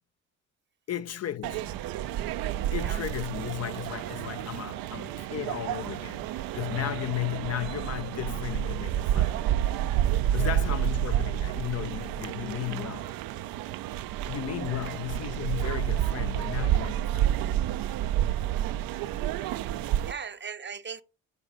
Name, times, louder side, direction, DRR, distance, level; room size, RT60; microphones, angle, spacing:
voice 1, 0.9-1.8 2.7-9.4 10.3-13.1 14.3-17.3 20.0-20.1, left 12 dB, 45° left, 0.6 m, -35 dB
sound 1, 1.4-20.1, right 11 dB, 80° right, 0.6 m, -30 dB
voice 2, 20.1-21.0, right 6 dB, 30° right, 0.7 m, -39 dB
9.5 x 5.4 x 5.1 m
supercardioid pair, 65°, 35 cm